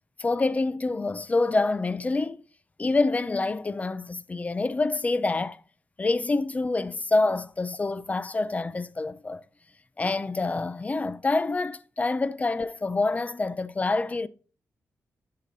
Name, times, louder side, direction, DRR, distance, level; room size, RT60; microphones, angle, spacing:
voice 1, 0.2-2.4 2.8-5.6 6.0-9.4 10.0-14.3, left 3 dB, 25° left, 0.5 m, -26 dB
11.5 x 5.8 x 4.0 m
wide cardioid pair, 120°, 6 cm